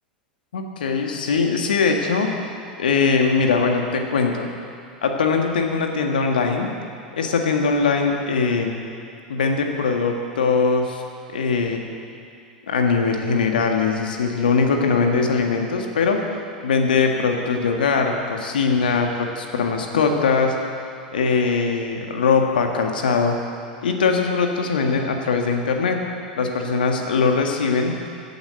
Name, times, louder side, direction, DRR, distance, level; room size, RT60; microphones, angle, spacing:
voice 1, 0.5-2.5 2.8-4.5 5.0-6.7 7.2-8.8 9.3-11.0 11.3-11.8 12.7-16.2 16.6-20.6 21.1-23.4 23.8-26.0 26.4-28.0, left 5 dB, 70° left, 3 dB, 1.8 m, -21 dB
16.0 x 9.0 x 7.8 m, 2.5 s
figure-of-eight pair, 85°, 5 cm